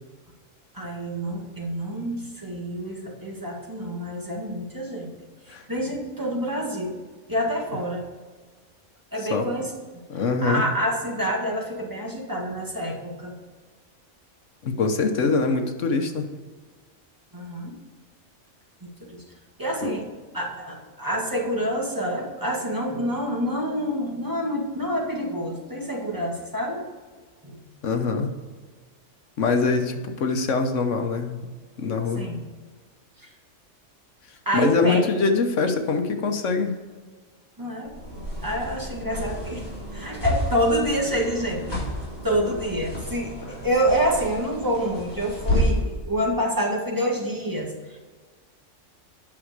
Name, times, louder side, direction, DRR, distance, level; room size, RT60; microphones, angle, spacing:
voice 1, 0.7-5.1 5.5-7.0 7.3-8.0 9.1-9.7 10.4-13.3 17.3-17.8 19.0-19.2 19.6-20.1 20.3-26.8 27.4-27.6 32.2-32.4 33.2-33.3 34.5-35.0 37.6-37.9 38.4-39.6 39.9-41.8 42.2-48.0, equal, 15° right, -1 dB, 1.8 m, -27 dB
voice 2, 10.1-10.6 14.6-16.3 19.8-19.9 27.8-28.3 29.4-31.5 31.8-32.2 34.5-36.8, left 4 dB, 75° left, 6 dB, 1.3 m, -23 dB
sound 1, 37.9-45.9, equal, 20° left, 3.8 m, -30 dB
9.4 x 6.1 x 6.6 m, 1.4 s
omnidirectional pair, 1.3 m